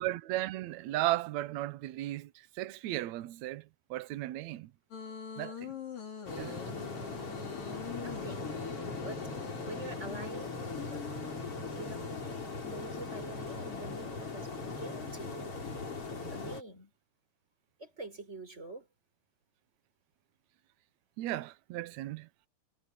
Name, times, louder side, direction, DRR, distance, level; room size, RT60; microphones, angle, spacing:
voice 1, 0.0-4.7 5.4-5.8 6.4-6.6 21.2-22.3, right 15 dB, 75° right, 1.7 m, -35 dB
sound 1, 4.9-12.2, left 6 dB, 60° left, 6.9 m, -44 dB
sound 2, 6.3-16.6, left 3 dB, 35° left, 5.5 m, -40 dB
voice 2, 8.0-8.6 8.9-11.2 11.7-12.1 12.6-15.5 16.3-16.9 17.8-18.9, right 2 dB, 15° right, 4.8 m, -46 dB
omnidirectional pair, 4.3 m